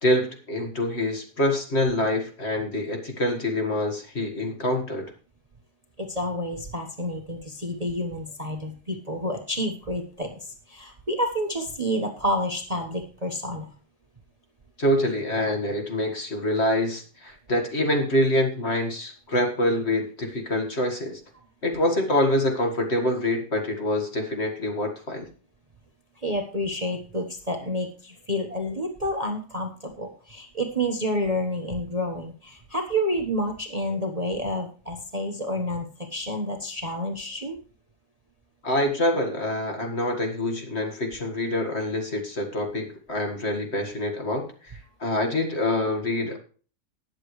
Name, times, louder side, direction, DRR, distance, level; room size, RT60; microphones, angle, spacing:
voice 1, 0.0-5.1 14.8-21.2 21.6-25.3 38.6-46.4, left 1 dB, 40° left, 3 dB, 2.1 m, -26 dB
voice 2, 6.0-13.7 26.2-37.6, equal, 25° right, 3 dB, 1.2 m, -29 dB
20.0 x 7.6 x 3.2 m, 0.40 s
omnidirectional pair, 1.8 m